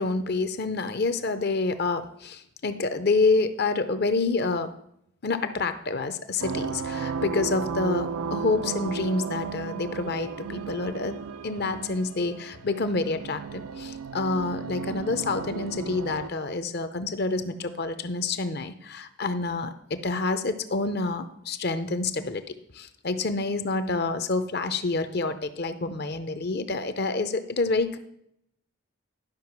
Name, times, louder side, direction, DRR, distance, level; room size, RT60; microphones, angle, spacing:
voice 1, 0.0-4.7 5.2-22.4 22.7-28.0, left 3 dB, 50° left, 11 dB, 0.6 m, -28 dB
sound 1, 6.4-16.3, right 6 dB, 85° right, 0.5 m, -34 dB
11.5 x 5.6 x 5.9 m, 0.73 s
head